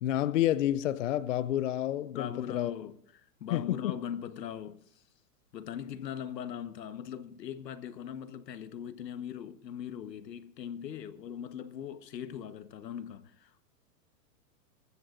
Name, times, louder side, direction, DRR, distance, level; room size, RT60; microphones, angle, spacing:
voice 1, 0.0-2.7 3.5-3.9, left 12 dB, 55° left, 0.5 m, -29 dB
voice 2, 2.1-5.0 5.5-13.6, left 9 dB, 90° left, 1.2 m, -40 dB
22.0 x 14.5 x 2.5 m
hypercardioid pair, 160°, 48 cm